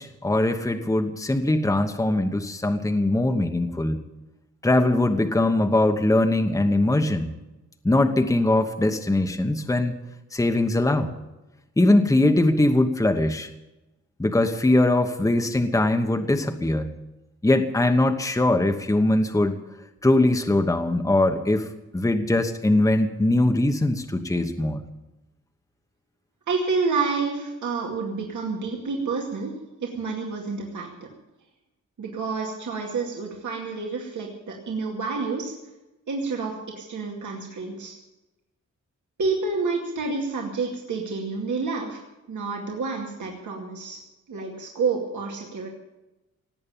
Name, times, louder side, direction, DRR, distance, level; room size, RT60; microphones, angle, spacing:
voice 1, 0.0-4.0 4.6-7.3 7.8-9.9 10.3-11.1 11.8-13.5 14.2-16.9 17.4-19.5 20.0-21.7 21.9-24.8, left 2 dB, 10° left, 6 dB, 1.0 m, -21 dB
voice 2, 26.5-29.5 29.8-31.1 32.0-35.5 36.1-37.9 39.2-42.0 42.3-44.0 44.3-45.7, right 4 dB, 75° right, -1 dB, 2.3 m, -29 dB
18.0 x 8.7 x 8.8 m, 1.0 s
wide cardioid pair, 130°, 30 cm